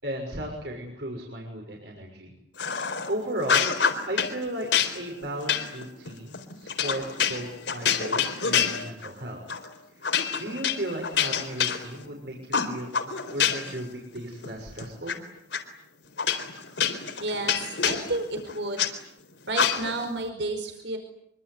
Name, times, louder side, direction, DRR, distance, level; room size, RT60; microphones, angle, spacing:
voice 1, 0.0-2.3 2.8-3.7 4.1-4.7 4.9-9.4 10.3-15.2, right 1 dB, 65° right, 1 dB, 6.2 m, -35 dB
sound 1, 2.6-3.1 3.4-4.3 4.7-9.2 9.5-9.7 10.0-12.1 12.5-13.8 14.2-15.1 15.5-15.6 16.2-18.9 19.5-20.1, left 7 dB, 85° left, 4.0 m, -27 dB
voice 2, 17.2-18.9 19.5-21.0, right 2 dB, 85° right, 7 dB, 4.9 m, -31 dB
25.5 x 24.5 x 9.6 m, 0.75 s
head